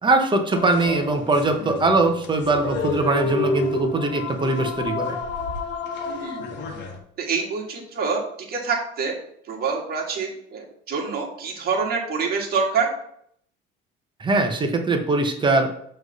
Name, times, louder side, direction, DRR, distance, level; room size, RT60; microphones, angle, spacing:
voice 1, 0.0-5.2 14.2-15.8, right 2 dB, 20° right, 5 dB, 1.0 m, -21 dB
sound 1, 0.5-7.0, left 3 dB, 60° left, 1.2 m, -30 dB
voice 2, 6.1-6.4 7.2-8.2 8.5-9.2 9.5-12.9, right 5 dB, 50° right, 0 dB, 1.8 m, -26 dB
6.0 x 3.3 x 5.4 m, 0.68 s
cardioid pair, 115°, 21 cm